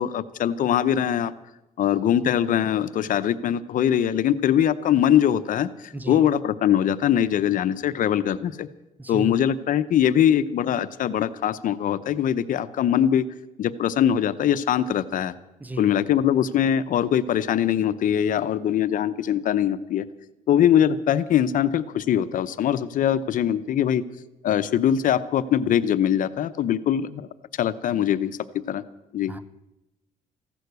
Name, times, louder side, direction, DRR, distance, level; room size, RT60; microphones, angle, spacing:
voice 1, 0.0-1.3 1.8-8.7 9.1-13.2 13.6-15.3 15.8-20.0 20.5-24.0 24.4-27.3 27.6-28.4 28.7-28.8 29.1-29.3, left 10 dB, 70° left, 13 dB, 0.8 m, -22 dB
voice 2, 5.9-6.3 9.0-9.3 15.6-15.9 29.3-29.5, right 2 dB, 10° right, 15 dB, 0.8 m, -34 dB
15.5 x 11.5 x 8.1 m, 0.93 s
cardioid pair, 100°, 14 cm